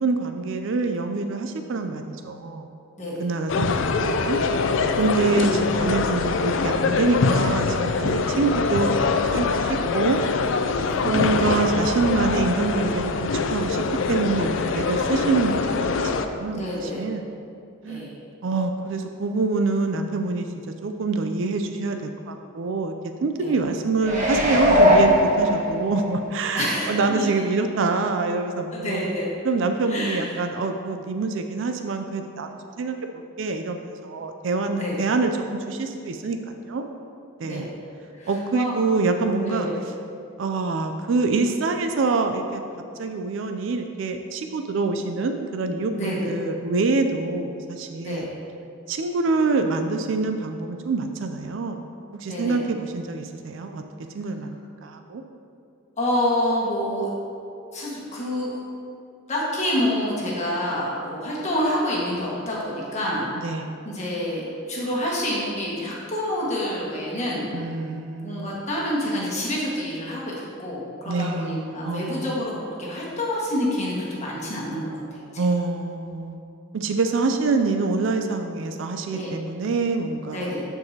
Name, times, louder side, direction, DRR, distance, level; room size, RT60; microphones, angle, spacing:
voice 1, 0.0-2.7 3.2-4.4 5.0-8.9 9.2-10.2 11.0-13.8 14.1-17.2 17.8-18.2 18.4-20.5 20.8-22.9 23.2-29.0 29.4-35.3 35.7-36.4 36.6-36.8 37.4-37.7 38.3-39.7 40.4-42.6 43.0-48.3 48.9-51.9 52.1-53.8 54.1-54.6 54.8-55.2 63.4-63.7 67.5-68.5 71.1-72.3 75.4-76.4 76.7-80.5, right 3 dB, 60° right, 6 dB, 0.4 m, -25 dB
voice 2, 3.0-3.3 4.9-5.1 10.8-11.0 16.5-17.0 17.8-18.1 23.4-23.6 26.5-27.3 28.7-29.3 29.9-30.3 34.7-35.0 37.4-37.7 38.1-38.8 39.4-39.8 45.9-46.3 48.0-48.3 52.3-52.6 56.0-57.1 57.7-58.5 59.3-63.3 63.8-67.5 68.2-75.5 79.1-79.3 80.3-80.6, left 1 dB, 35° left, -5 dB, 1.5 m, -28 dB
sound 1, 3.5-16.3, left 4 dB, 65° left, 0.4 m, -23 dB
sound 2, 24.0-26.1 26.6-26.7, equal, 35° right, 1.3 m, -18 dB
13.0 x 4.6 x 2.8 m, 2.5 s
head